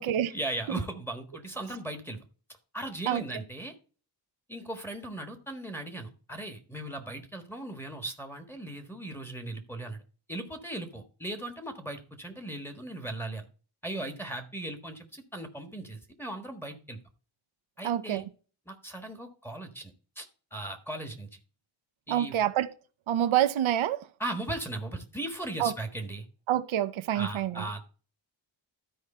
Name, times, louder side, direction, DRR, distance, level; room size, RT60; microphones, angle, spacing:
voice 1, 0.3-2.2 2.7-3.7 4.5-10.0 10.3-13.4 13.8-17.0 17.8-18.2 18.7-20.3 20.5-21.3 22.1-22.4 24.2-26.2 27.1-27.8, right 1 dB, 5° left, 1.4 m, -38 dB
voice 2, 17.8-18.2 22.1-22.7 23.1-24.1 25.6-25.7 26.5-27.8, right 11 dB, 75° right, 0.7 m, -27 dB
12.5 x 4.8 x 4.3 m
wide cardioid pair, 135°, 48 cm